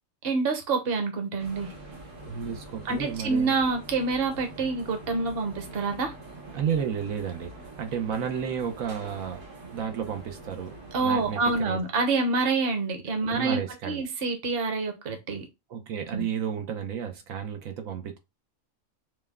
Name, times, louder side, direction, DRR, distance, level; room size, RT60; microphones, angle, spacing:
voice 1, 0.2-1.7 2.8-6.1 10.9-15.4 16.1-16.2, right 3 dB, 50° right, 1.1 m, -27 dB
sound 1, 1.4-11.6, right 2 dB, 70° right, 1.6 m, -44 dB
voice 2, 2.3-3.5 6.5-9.4 9.7-10.7 11.0-11.8 13.3-14.0 15.7-18.2, right 8 dB, 85° right, 1.2 m, -32 dB
5.3 x 2.2 x 3.5 m
omnidirectional pair, 1.4 m